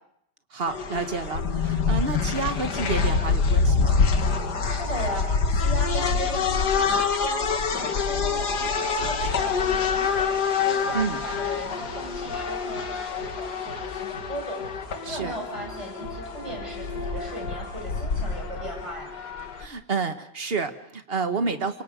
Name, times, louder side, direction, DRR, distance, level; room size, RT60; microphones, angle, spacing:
voice 1, 0.5-4.0 10.9-11.2 15.0-15.3 19.6-21.8, right 4 dB, 35° right, 8 dB, 1.4 m, -29 dB
sound 1, 0.7-19.6, left 5 dB, 70° left, 2.2 m, -26 dB
voice 2, 4.6-7.4 7.7-10.4 10.6-14.6 15.1-19.1, equal, 15° right, 0 dB, 7.6 m, -37 dB
sound 2, 10.8-18.4, right 2 dB, 60° right, 7.2 m, -46 dB
26.0 x 24.5 x 5.1 m, 0.75 s
omnidirectional pair, 1.9 m